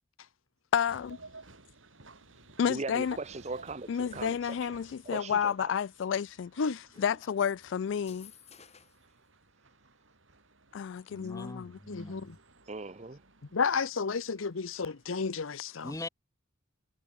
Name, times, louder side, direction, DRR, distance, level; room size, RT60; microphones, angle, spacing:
voice 1, 0.7-1.2 2.6-3.2 3.9-8.3 10.7-11.8, left 7 dB, 65° left, 0.3 m, -31 dB
sound 1, 0.9-15.4, right 3 dB, 75° right, 6.4 m, -57 dB
voice 2, 2.7-4.6 5.1-5.7 12.7-13.2, right 3 dB, 35° right, 0.9 m, -39 dB
sound 2, 7.9-9.1, left 8 dB, 35° left, 5.7 m, -55 dB
voice 3, 11.1-12.4 14.8-14.9 15.8-16.1, left 2 dB, 15° left, 1.0 m, -42 dB
voice 4, 11.9-12.4 13.5-15.9, left 5 dB, 85° left, 0.8 m, -31 dB
head